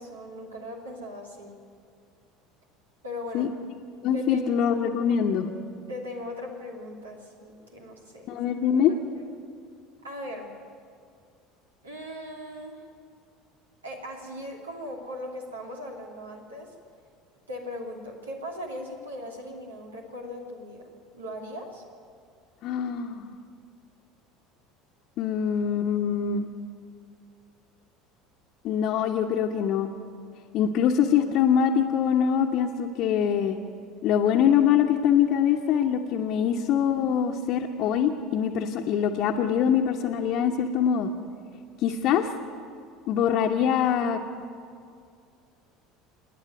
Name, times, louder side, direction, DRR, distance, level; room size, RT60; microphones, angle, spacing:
voice 1, 0.0-1.6 3.0-3.5 4.1-4.7 5.9-8.3 8.9-9.0 10.0-10.6 11.8-12.9 13.8-16.7 17.5-20.9 21.1-21.8 41.9-42.2, left 1 dB, 80° right, 0 dB, 2.8 m, -39 dB
voice 2, 4.0-5.5 8.3-8.9 22.6-23.3 25.2-26.5 28.6-29.9 30.5-33.6 34.0-41.1 41.8-42.3 43.1-44.2, left 8 dB, 50° left, -2 dB, 1.2 m, -24 dB
27.5 x 10.0 x 9.3 m, 2.4 s
figure-of-eight pair, 65°, 0 cm